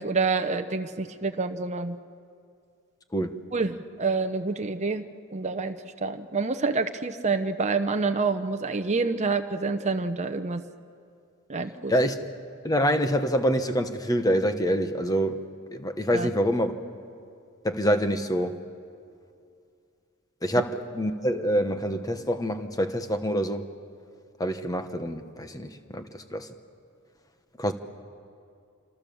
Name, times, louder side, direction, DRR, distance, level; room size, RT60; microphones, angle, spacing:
voice 1, 0.0-2.0 3.5-5.0 5.3-10.6 11.5-11.9 16.1-16.3, right 4 dB, 30° right, 7 dB, 0.8 m, -27 dB
voice 2, 12.6-15.4 15.7-16.7 17.6-18.6 20.4-23.6 24.4-26.5 27.6-27.7, equal, 15° left, 8 dB, 1.2 m, -26 dB
27.5 x 27.0 x 7.1 m, 2.4 s
head